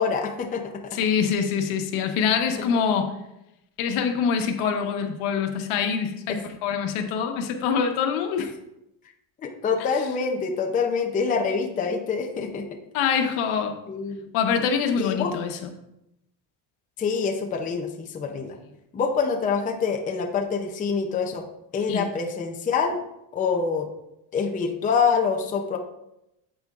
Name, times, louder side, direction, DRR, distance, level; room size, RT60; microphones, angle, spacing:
voice 1, 0.0-0.7 2.6-2.7 6.3-6.4 9.4-12.7 13.9-14.2 15.0-15.3 17.0-18.6 18.9-21.4 21.7-23.0 23.3-23.9 24.3-25.8, left 5 dB, 15° left, 3 dB, 0.5 m, -25 dB
voice 2, 0.9-3.1 3.8-8.5 12.9-13.8 14.3-15.7 21.9-22.1, left 6 dB, 75° left, 5 dB, 1.2 m, -25 dB
8.8 x 8.0 x 2.4 m, 0.86 s
cardioid pair, 155°, 49 cm